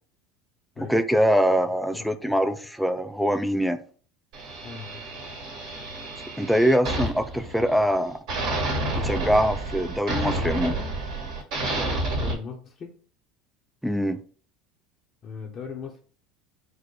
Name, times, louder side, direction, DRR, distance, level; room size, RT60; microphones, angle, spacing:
voice 1, 0.8-3.8 6.4-8.2 9.0-10.8 13.8-14.2, equal, ahead, 0.3 m, -23 dB
sound 1, 4.3-8.0 8.3-12.3, right 2 dB, 65° right, 1.9 m, -30 dB
voice 2, 4.6-5.0 12.2-12.9 15.2-16.0, left 5 dB, 35° left, 0.6 m, -38 dB
4.5 x 2.1 x 4.6 m
supercardioid pair, 130°, 0 cm